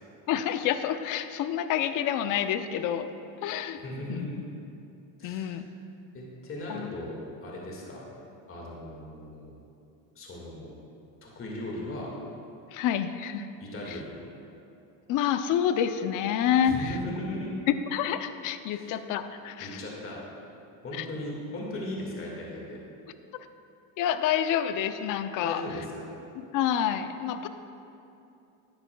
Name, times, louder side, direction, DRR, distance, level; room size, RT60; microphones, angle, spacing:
voice 1, 0.3-3.1 3.4-3.8 4.1-4.3 5.2-5.6 6.7-6.9 12.7-13.5 13.9-14.0 15.1-16.9 17.9-19.7 20.9-21.0 24.0-25.6 26.5-27.5, left 9 dB, 45° left, 10 dB, 0.5 m, -28 dB
voice 2, 3.8-4.4 5.2-5.6 6.1-8.0 8.5-9.5 10.2-10.7 11.2-12.1 13.6-14.2 16.6-17.5 18.7-19.0 19.6-20.2 20.8-22.8 25.4-26.1, left 1 dB, 30° left, -3 dB, 1.9 m, -37 dB
12.5 x 10.0 x 2.3 m, 2.7 s
supercardioid pair, 110°, 43 cm